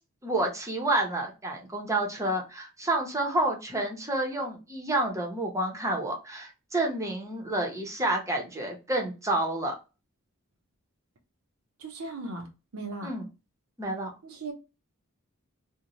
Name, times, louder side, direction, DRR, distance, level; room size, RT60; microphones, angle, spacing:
voice 1, 0.2-9.7 13.0-13.2 13.8-14.1, right 1 dB, 15° right, 0.7 m, -29 dB
voice 2, 11.8-13.1 14.2-14.5, right 2 dB, 75° right, 0.6 m, -38 dB
2.6 x 2.1 x 2.9 m
head